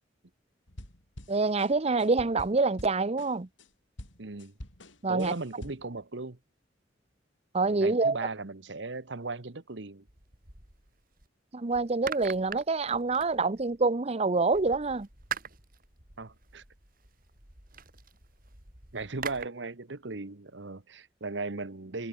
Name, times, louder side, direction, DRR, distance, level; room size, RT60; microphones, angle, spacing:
sound 1, 0.7-3.7 4.0-6.0, left 1 dB, 85° left, 7.2 m, -47 dB
voice 1, 1.3-3.5 5.0-5.3 7.5-8.2 11.5-15.1, right 3 dB, 35° right, 0.7 m, -26 dB
voice 2, 4.2-4.5 5.1-6.4 7.6-10.1 16.2-16.6 18.9-22.1, right 3 dB, 65° right, 1.2 m, -37 dB
sound 2, 10.1-11.3 11.7-13.9 14.5-19.5, right 6 dB, 50° right, 6.0 m, -43 dB
head